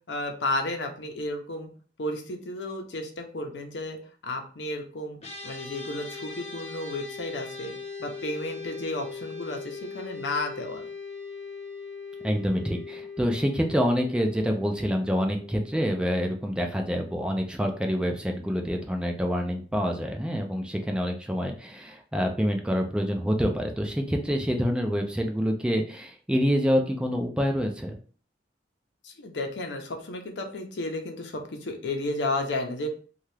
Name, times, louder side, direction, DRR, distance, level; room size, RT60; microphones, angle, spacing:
voice 1, 0.1-1.7 2.0-4.0 4.2-5.2 5.4-7.7 8.0-10.9 29.0-32.9, left 2 dB, 85° left, 3 dB, 0.7 m, -32 dB
sound 1, 5.2-16.7, left 4 dB, 40° left, 0.6 m, -40 dB
voice 2, 12.2-28.0, equal, 5° right, 3 dB, 0.4 m, -27 dB
2.8 x 2.3 x 3.2 m, 0.41 s
head